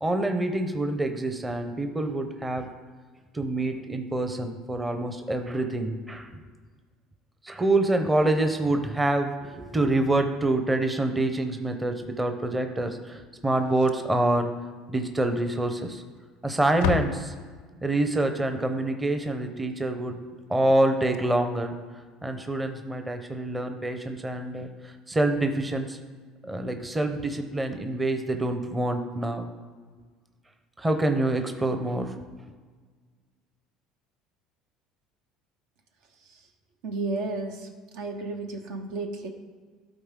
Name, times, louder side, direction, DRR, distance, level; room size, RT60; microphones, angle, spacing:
voice 1, 0.0-2.7 3.3-6.4 7.4-14.5 14.9-16.0 16.4-17.4 17.8-20.2 20.5-21.7 22.2-26.0 26.4-29.5 30.8-32.1, right 2 dB, 15° right, 6 dB, 0.7 m, -26 dB
Slam, 13.6-14.3 14.6-14.7 15.1-15.2 16.0-16.4 16.6-17.9 20.6-20.7 21.0-21.2 22.7-22.8, left 9 dB, 80° left, 0.4 m, -33 dB
voice 2, 36.8-37.7 37.9-39.3, right 3 dB, 75° right, 4 dB, 1.0 m, -32 dB
12.0 x 4.2 x 3.7 m, 1.5 s
supercardioid pair, 105°, 0 cm